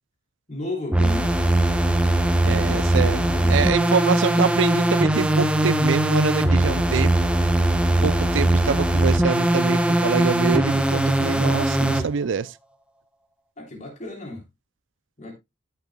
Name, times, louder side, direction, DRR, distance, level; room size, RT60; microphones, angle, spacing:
voice 1, 0.5-1.3 2.6-3.7 13.6-14.4 15.2-15.3, left 2 dB, 35° left, 3.2 m, -34 dB
sound 1, 0.9-12.0, right 1 dB, 5° right, 1.0 m, -20 dB
voice 2, 2.4-3.2 3.5-7.1 8.0-12.5, right 6 dB, 70° right, 0.4 m, -25 dB
16.5 x 6.7 x 2.3 m
head